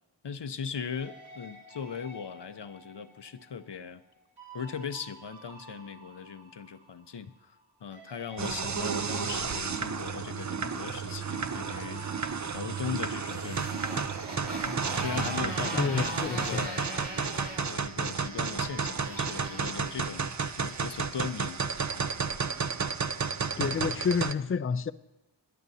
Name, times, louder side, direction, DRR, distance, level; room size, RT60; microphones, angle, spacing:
voice 1, 0.2-4.0 4.5-7.3 7.8-14.1 14.5-16.9 17.6-20.3 20.6-21.6 21.9-22.1, left 6 dB, 65° left, 0.7 m, -39 dB
sound 1, 0.9-7.7 7.9-14.8 15.0-19.6, right 1 dB, 85° right, 3.9 m, -51 dB
sound 2, 8.4-24.3, right 5 dB, 40° right, 0.6 m, -32 dB
Motorcycle, 12.2-21.6, right 1 dB, 60° right, 2.8 m, -41 dB
voice 2, 15.7-16.6 23.6-24.9, left 6 dB, 30° left, 0.4 m, -29 dB
21.0 x 11.0 x 2.8 m
wide cardioid pair, 45°, 46 cm